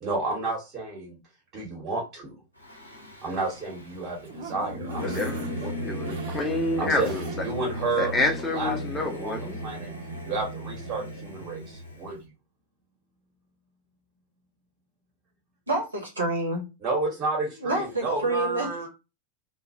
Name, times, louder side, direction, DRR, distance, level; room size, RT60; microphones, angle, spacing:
voice 1, 0.0-1.2 1.5-2.4 3.2-5.3 5.6-6.2 6.8-8.1 8.5-8.8 9.1-9.9 10.2-12.3 16.8-18.9, right 3 dB, 35° right, 1.0 m, -31 dB
Singing / Musical instrument, 2.6-12.2, equal, 90° left, 0.6 m, -36 dB
sound 1, 3.8-7.7 8.1-8.2 8.5-8.6, right 3 dB, 50° right, 0.7 m, -41 dB
voice 2, 5.0-5.4 5.8-7.0 8.0-9.6, left 2 dB, 15° left, 0.5 m, -28 dB
voice 3, 15.7-16.6 17.6-18.8, right 2 dB, 75° right, 0.9 m, -28 dB
2.2 x 2.0 x 2.6 m
figure-of-eight pair, 90°, 0 cm